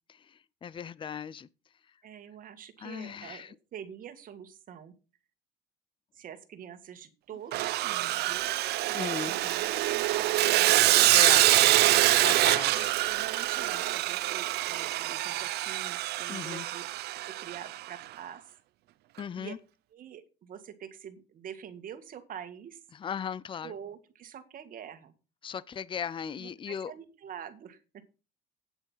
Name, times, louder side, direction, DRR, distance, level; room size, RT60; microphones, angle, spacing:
voice 1, 0.1-1.5 2.8-3.6 8.9-9.3 11.1-11.7 12.2-12.9 16.3-16.6 19.2-19.6 22.9-23.7 25.4-26.9, left 7 dB, 30° left, 0.5 m, -37 dB
voice 2, 2.0-4.9 6.1-8.5 8.8-11.3 12.7-16.8 17.1-18.5 19.4-19.5 19.9-22.8 23.6-25.1 26.4-28.0, right 9 dB, 55° right, 1.9 m, -46 dB
Sawing, 7.5-17.8, right 16 dB, 75° right, 0.6 m, -25 dB
9.1 x 8.1 x 5.6 m
cardioid pair, 110°, 17 cm